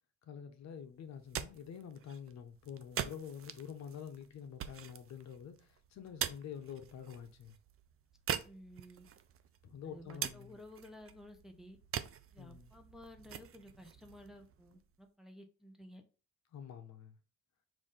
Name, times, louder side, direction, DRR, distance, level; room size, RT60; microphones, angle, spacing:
voice 1, 0.3-7.6 9.6-10.6 12.4-12.7 16.5-17.2, left 8 dB, 65° left, 0.8 m, -47 dB
sound 1, 1.1-15.0, right 9 dB, 50° right, 0.5 m, -45 dB
voice 2, 8.4-9.1 9.8-11.8 12.3-16.0, left 1 dB, ahead, 0.8 m, -54 dB
5.0 x 2.7 x 3.7 m
cardioid pair, 90°, 30 cm